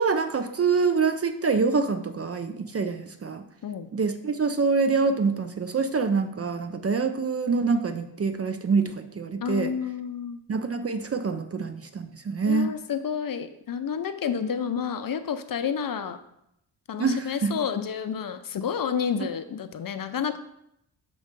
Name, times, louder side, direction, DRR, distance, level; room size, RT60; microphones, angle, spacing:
voice 1, 0.0-3.4 3.9-9.7 10.5-12.7 17.0-17.5, right 4 dB, 35° right, 8 dB, 0.4 m, -25 dB
voice 2, 9.4-10.4 12.5-16.2 16.9-20.4, left 7 dB, 50° left, 10 dB, 0.5 m, -30 dB
6.3 x 3.1 x 5.1 m, 0.78 s
cardioid pair, 80°, 46 cm